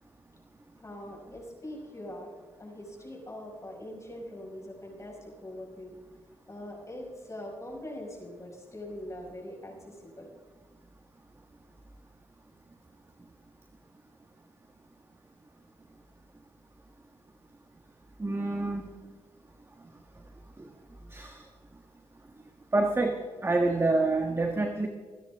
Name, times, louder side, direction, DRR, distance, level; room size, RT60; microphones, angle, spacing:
voice 1, 0.8-5.9 6.5-10.3, left 1 dB, 25° left, -1 dB, 5.6 m, -42 dB
voice 2, 18.2-18.9 21.1-21.4 22.7-23.2 23.4-24.9, right 2 dB, 25° right, 4 dB, 1.5 m, -27 dB
27.0 x 9.9 x 3.6 m, 1.5 s
cardioid pair, 65°, 11 cm